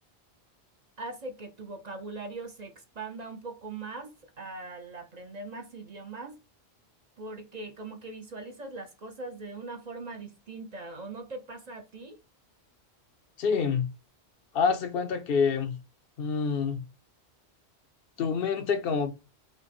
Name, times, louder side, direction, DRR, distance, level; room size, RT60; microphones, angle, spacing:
voice 1, 1.0-6.4 7.2-12.2, right 3 dB, 45° right, 0.6 m, -41 dB
voice 2, 13.4-13.9 14.5-15.8 16.2-16.9 18.2-19.1, left 6 dB, 65° left, 0.8 m, -27 dB
5.1 x 2.0 x 4.1 m
omnidirectional pair, 1.1 m